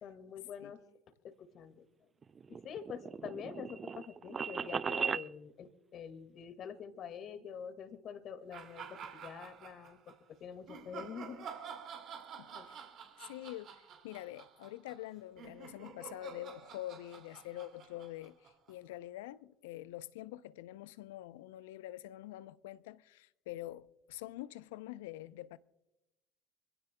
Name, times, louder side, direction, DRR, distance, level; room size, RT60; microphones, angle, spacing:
voice 1, 0.0-0.8 1.2-1.8 2.5-11.5 12.5-12.7, left 7 dB, 50° left, 1.9 m, -46 dB
sound 1, 2.2-5.3, right 6 dB, 35° right, 0.4 m, -37 dB
sound 2, 8.5-10.2 10.7-18.9, right 7 dB, 55° right, 2.3 m, -50 dB
voice 2, 12.4-12.9 13.2-25.6, left 15 dB, 75° left, 0.5 m, -46 dB
25.5 x 17.0 x 2.2 m
hypercardioid pair, 70°, 0 cm